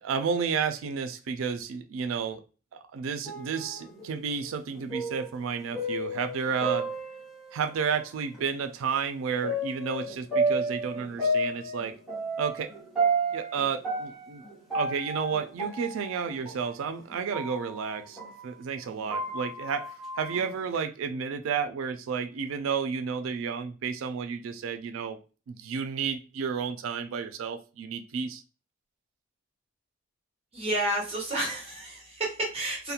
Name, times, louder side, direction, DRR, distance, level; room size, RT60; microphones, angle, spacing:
voice 1, 0.0-2.4 2.7-6.9 7.5-12.0 12.4-12.7 13.3-14.4 14.7-19.9 20.2-25.2 25.5-28.4, right 6 dB, 80° right, 8 dB, 0.3 m, -31 dB
sound 1, 3.3-7.9 8.3-8.4 9.4-18.5 18.9-20.8, right 2 dB, ahead, 0.9 m, -32 dB
voice 2, 30.5-32.9, right 1 dB, 30° right, -3 dB, 0.7 m, -30 dB
2.4 x 2.1 x 2.7 m, 0.34 s
head